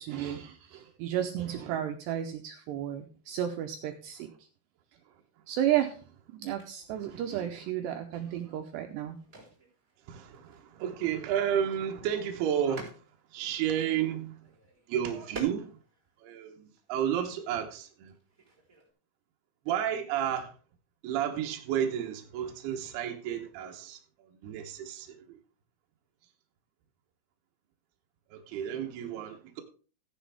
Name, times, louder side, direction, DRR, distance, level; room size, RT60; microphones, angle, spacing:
voice 1, 0.0-4.3 5.5-6.0 6.3-9.2, right 11 dB, 90° right, 2.4 m, -32 dB
sound 1, 5.7-5.8 6.4-16.3 16.7-16.8 17.1-17.8 18.1-18.9, right 3 dB, 20° right, 3.6 m, -50 dB
voice 2, 6.9-7.2 10.1-13.0 13.3-14.4 14.9-15.7 16.2-18.1 19.7-20.5 21.0-24.0 24.4-25.4 28.3-29.6, right 9 dB, 75° right, 2.4 m, -32 dB
15.0 x 10.0 x 3.5 m
omnidirectional pair, 6.0 m